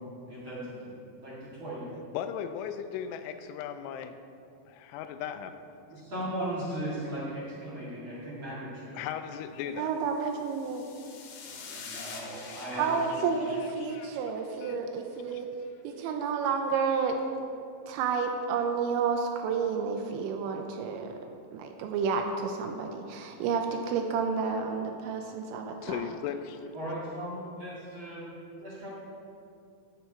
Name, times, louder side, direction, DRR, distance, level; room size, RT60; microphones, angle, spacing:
voice 1, 0.0-1.9 5.9-9.0 11.4-13.4 26.7-28.3 28.6-28.9, right 1 dB, 40° right, -8 dB, 1.9 m, -38 dB
voice 2, 2.1-4.2 4.7-5.5 8.9-9.9 12.5-12.6 13.8-14.1 14.6-14.8 15.3-15.4 25.8-26.7, left 9 dB, 85° left, 9 dB, 3.0 m, -37 dB
voice 3, 9.8-10.9 12.8-15.5 15.8-17.2 17.9-21.2 21.5-26.1, right 5 dB, 80° right, 4 dB, 2.8 m, -30 dB
sound 1, 10.2-14.7, left 5 dB, 70° left, 3.2 m, -47 dB
14.0 x 7.8 x 4.5 m, 2.5 s
omnidirectional pair, 5.5 m